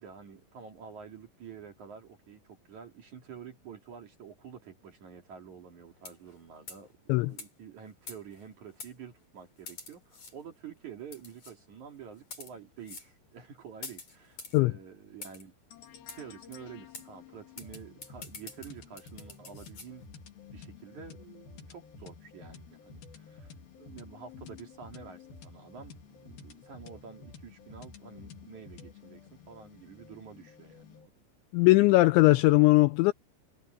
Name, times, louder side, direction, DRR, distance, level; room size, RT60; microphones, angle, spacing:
voice 1, 0.0-15.5 16.1-20.0 20.5-31.1, right 7 dB, 50° right, 2.8 m, -48 dB
sound 1, 6.0-6.3 6.7-6.9 7.4-7.5 8.1-8.4 8.8-8.9 9.7-10.3 11.1-11.5 12.2-12.5 12.9-13.1 13.8-14.6 15.2-15.4 16.1-16.2 16.5-16.6 16.9-17.1 17.6-19.9, left 4 dB, 35° left, 6.5 m, -45 dB
sound 2, 15.7-31.1, left 5 dB, 55° left, 4.0 m, -51 dB
voice 2, 31.5-33.1, left 21 dB, 90° left, 2.6 m, -20 dB
omnidirectional pair, 5.8 m